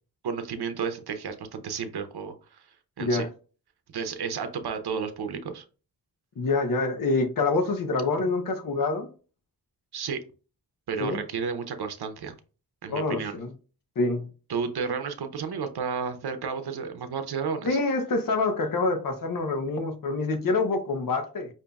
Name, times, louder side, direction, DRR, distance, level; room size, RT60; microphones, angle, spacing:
voice 1, 0.2-2.6 3.0-3.3 3.9-5.6 9.9-10.2 10.9-12.3 12.8-13.4 14.5-17.7, right 6 dB, 75° right, 0.7 m, -32 dB
voice 2, 6.4-9.1 11.0-11.2 12.9-13.5 14.0-14.3 17.6-21.5, left 3 dB, 55° left, 0.8 m, -26 dB
5.2 x 2.7 x 2.3 m
wide cardioid pair, 70°, 39 cm